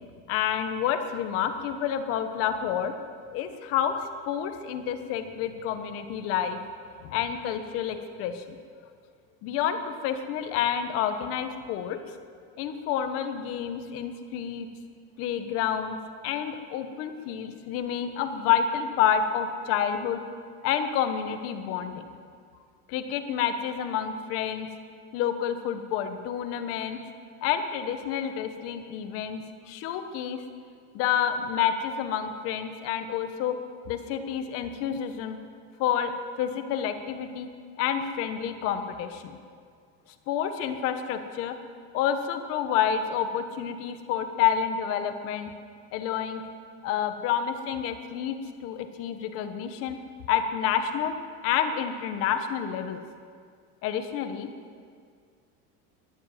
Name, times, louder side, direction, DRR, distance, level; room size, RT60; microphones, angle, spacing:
voice 1, 0.3-2.9 3.3-4.0 4.2-6.6 7.0-8.6 9.4-12.0 12.6-14.7 15.2-16.0 16.2-20.2 20.6-22.0 22.9-24.7 25.1-27.0 27.4-30.4 30.9-33.6 33.9-35.4 35.8-37.5 37.8-39.4 40.3-41.5 41.9-45.5 45.9-46.4 46.8-50.0 50.3-51.2 51.4-53.0 53.8-54.5, left 9 dB, 45° left, 8 dB, 1.3 m, -29 dB
13.0 x 12.0 x 9.2 m, 2.1 s
cardioid pair, 170°, 33 cm